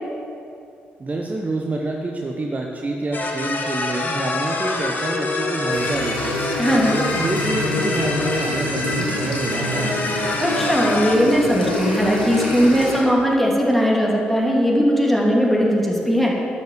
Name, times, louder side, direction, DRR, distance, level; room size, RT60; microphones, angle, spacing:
voice 1, 1.0-6.4 6.7-9.9, right 2 dB, 30° right, 1 dB, 1.0 m, -27 dB
with us, 3.1-11.2, left 2 dB, 40° left, 1.6 m, -26 dB
sound 1, 5.7-13.0, left 1 dB, 90° left, 1.3 m, -27 dB
voice 2, 6.6-7.0 10.4-16.3, equal, 5° left, -3 dB, 2.7 m, -18 dB
11.5 x 5.5 x 7.7 m, 2.7 s
figure-of-eight pair, 40°, 5 cm